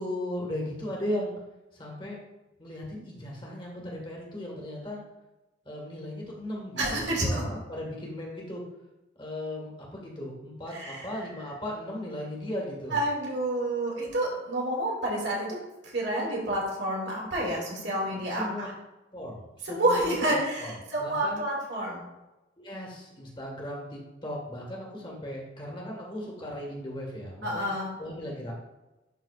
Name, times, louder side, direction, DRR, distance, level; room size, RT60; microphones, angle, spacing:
voice 1, 0.0-1.3 1.7-2.2 2.6-5.0 5.6-8.6 9.2-13.0 18.3-18.7 19.1-21.5 22.6-27.7 28.0-28.5, left 1 dB, 25° left, -2 dB, 1.6 m, -37 dB
voice 2, 6.8-7.4 10.7-11.1 12.9-15.5 15.8-18.7 19.6-22.0 27.4-27.9, right 1 dB, 65° right, -3 dB, 2.2 m, -29 dB
11.0 x 4.1 x 2.5 m, 1.0 s
head